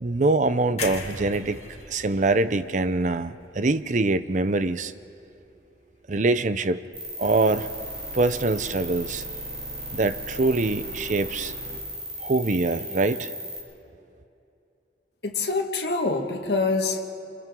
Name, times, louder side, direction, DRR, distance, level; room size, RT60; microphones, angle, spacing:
voice 1, 0.0-1.6 1.9-4.9 6.1-6.8 7.2-7.7 8.1-9.2 9.9-11.5 12.2-13.3, right 2 dB, 45° right, 13 dB, 0.6 m, -24 dB
sound 1, 0.8-4.8 5.2-5.4, left 4 dB, 40° left, 2.2 m, -39 dB
sound 2, 6.9-13.6, right 1 dB, 65° right, 4.8 m, -36 dB
voice 2, 15.2-17.1, left 3 dB, 70° left, 2 dB, 1.8 m, -25 dB
29.0 x 28.5 x 3.7 m, 2.8 s
head